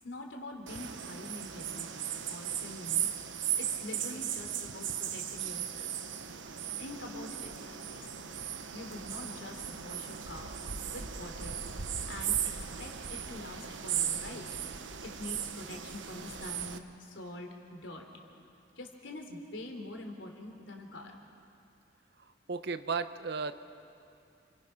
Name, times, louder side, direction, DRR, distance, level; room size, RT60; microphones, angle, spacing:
voice 1, 0.0-1.9 2.3-3.1 3.6-5.9 6.8-8.0 8.7-10.6 10.8-11.6 12.0-14.5 15.0-18.0 18.7-21.2, left 1 dB, 90° left, 2 dB, 3.3 m, -45 dB
sound 1, 0.7-16.8, right 9 dB, 80° right, 1.1 m, -37 dB
voice 2, 22.5-23.5, right 4 dB, 60° right, 11 dB, 0.9 m, -34 dB
29.5 x 25.0 x 5.9 m, 2.6 s
head